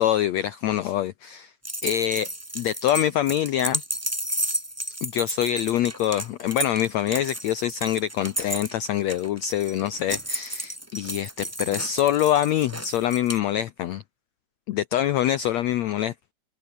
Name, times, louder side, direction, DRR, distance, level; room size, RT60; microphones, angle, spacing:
voice 1, 0.0-1.5 1.8-2.3 2.5-3.8 5.0-14.0 14.7-16.1, left 11 dB, 90° left, 1.5 m, -25 dB
sound 1, 1.6-13.4, right 1 dB, 5° right, 2.7 m, -32 dB
open air
omnidirectional pair, 4.2 m